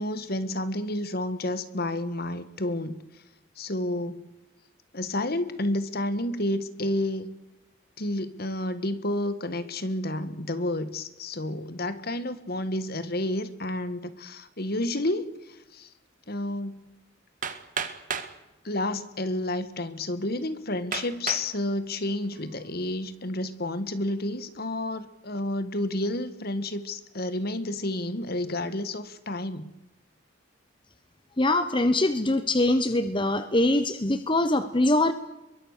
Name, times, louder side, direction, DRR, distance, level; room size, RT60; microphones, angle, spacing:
voice 1, 0.0-3.0 3.6-4.2 4.9-7.3 8.0-15.9 16.3-16.8 18.6-29.7, left 1 dB, 50° left, 12 dB, 1.7 m, -30 dB
Hammer, 17.4-18.4 19.3-19.4 20.0-20.1 20.9-21.5 22.1-22.5, right 6 dB, 40° right, 1.9 m, -33 dB
voice 2, 31.4-35.1, left 2 dB, 25° left, 10 dB, 1.1 m, -23 dB
26.0 x 22.5 x 6.7 m, 0.99 s
head